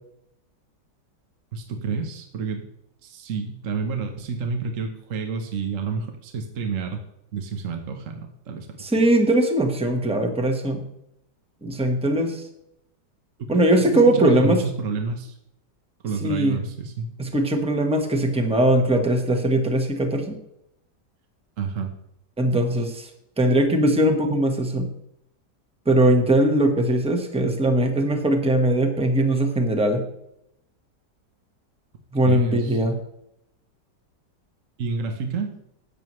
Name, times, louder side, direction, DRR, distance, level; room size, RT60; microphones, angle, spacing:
voice 1, 1.5-2.7 3.0-7.0 7.3-8.7 13.5-13.9 14.1-15.4 16.0-17.1 21.6-21.9 32.2-32.8 34.8-35.5, right 4 dB, 50° right, 4 dB, 1.3 m, -29 dB
voice 2, 8.8-10.8 11.6-12.4 13.5-14.6 16.2-16.6 17.2-20.4 22.4-23.1 23.4-24.9 25.8-30.0 32.1-32.9, right 1 dB, 5° right, 4 dB, 1.1 m, -20 dB
13.5 x 9.1 x 3.2 m, 0.81 s
omnidirectional pair, 1.9 m